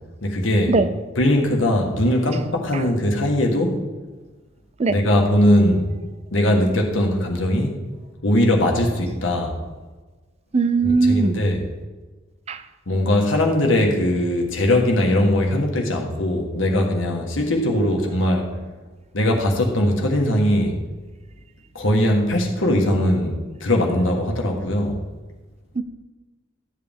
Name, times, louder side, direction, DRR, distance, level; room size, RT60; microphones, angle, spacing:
voice 1, 0.2-0.7 1.1-3.8 4.9-5.9 6.3-7.8 8.2-9.5 11.0-11.6 12.9-18.5 19.1-20.8 21.7-25.0, left 1 dB, 90° left, 1 dB, 1.5 m, -20 dB
voice 2, 10.5-11.4 12.5-12.6 25.8-25.9, right 4 dB, 35° right, 11 dB, 0.5 m, -19 dB
12.0 x 7.7 x 3.6 m, 1.3 s
head